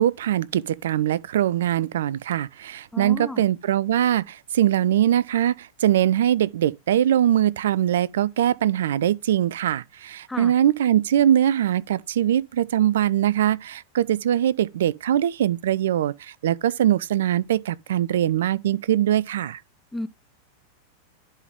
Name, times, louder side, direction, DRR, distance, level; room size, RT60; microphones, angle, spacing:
voice 1, 0.0-19.6, right 11 dB, 60° right, 0.4 m, -22 dB
voice 2, 2.9-3.4 10.3-10.5 19.9-20.1, left 2 dB, 5° left, 0.4 m, -32 dB
11.0 x 4.0 x 3.5 m
figure-of-eight pair, 90°, 0 cm